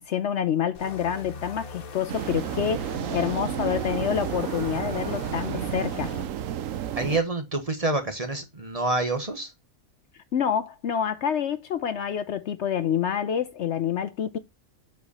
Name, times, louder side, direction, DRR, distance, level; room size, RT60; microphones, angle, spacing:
voice 1, 0.0-6.1 10.3-14.4, left 8 dB, 65° left, 0.8 m, -27 dB
sound 1, 0.7-6.3, left 4 dB, 85° left, 1.5 m, -40 dB
sound 2, 2.1-7.2, right 11 dB, 75° right, 1.0 m, -31 dB
voice 2, 7.0-9.5, right 2 dB, 30° right, 1.1 m, -27 dB
7.9 x 4.6 x 4.1 m
omnidirectional pair, 1.4 m